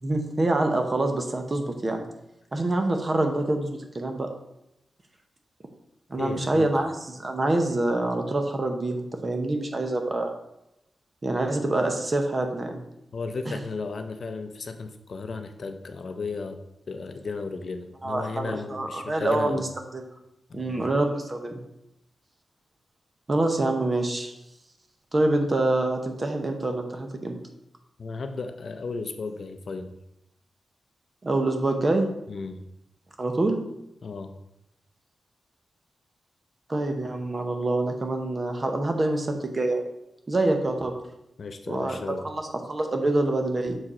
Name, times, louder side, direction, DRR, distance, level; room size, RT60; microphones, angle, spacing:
voice 1, 0.0-2.0 2.5-4.3 6.1-10.3 11.2-12.8 13.5-13.6 18.0-19.7 19.9-20.0 20.5-21.6 23.3-24.3 25.1-27.4 31.2-32.1 33.2-33.6 36.7-39.8 40.3-40.9 41.7-43.8, right 2 dB, 30° right, 5 dB, 0.9 m, -26 dB
voice 2, 6.2-6.7 13.1-16.6 16.9-19.6 20.5-20.9 28.0-29.9 32.3-32.6 34.0-34.3 41.4-42.2, left 4 dB, 50° left, 7 dB, 0.6 m, -34 dB
6.5 x 4.8 x 4.3 m, 0.84 s
wide cardioid pair, 150°, 0 cm